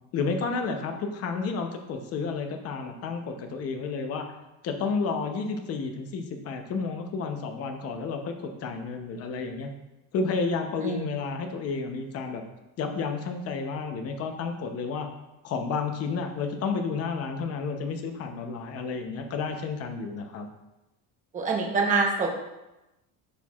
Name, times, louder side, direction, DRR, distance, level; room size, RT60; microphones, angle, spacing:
voice 1, 0.1-4.2 4.6-9.7 10.1-12.4 12.8-15.1 15.4-20.5, left 4 dB, 40° left, 5 dB, 0.7 m, -31 dB
voice 2, 21.3-22.3, right 4 dB, 20° right, -1 dB, 0.9 m, -25 dB
11.5 x 4.6 x 2.4 m, 0.98 s
cardioid pair, 175°, 38 cm